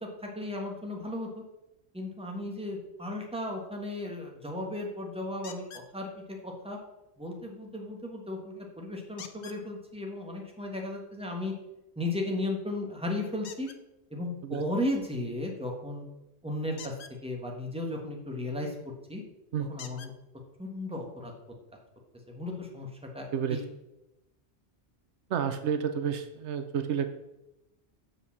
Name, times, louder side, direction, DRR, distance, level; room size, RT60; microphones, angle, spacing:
voice 1, 0.0-1.4 1.9-5.7 5.9-6.8 7.2-11.5 12.0-13.7 14.1-16.0 16.4-16.9 17.2-19.2 19.7-20.1 20.6-21.3 22.3-23.6, left 1 dB, 5° right, 0 dB, 1.4 m, -35 dB
sound 1, 5.4-5.9 9.2-9.6 13.4-13.8 16.7-17.2 18.8-18.9 19.8-20.1 21.1-21.2 21.7-21.8, left 7 dB, 70° left, 1.0 m, -46 dB
voice 2, 25.3-27.1, right 8 dB, 75° right, 8 dB, 0.9 m, -30 dB
6.8 x 5.0 x 7.1 m, 0.92 s
omnidirectional pair, 1.2 m